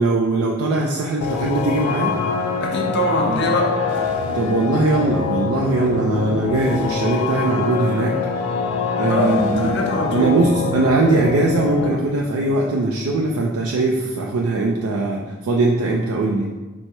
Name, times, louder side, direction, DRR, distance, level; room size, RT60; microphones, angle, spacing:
voice 1, 0.0-2.2 4.3-8.4 9.0-9.8 10.1-16.5, right 2 dB, 90° right, -1 dB, 0.4 m, -20 dB
sound 1, 1.2-11.9, left 4 dB, 85° left, 0.4 m, -24 dB
voice 2, 2.6-4.1 9.0-10.4, equal, 50° left, 0 dB, 0.6 m, -23 dB
sound 2, 3.2-15.4, left 1 dB, 10° right, 0.4 m, -40 dB
4.5 x 2.1 x 4.2 m, 1.2 s
head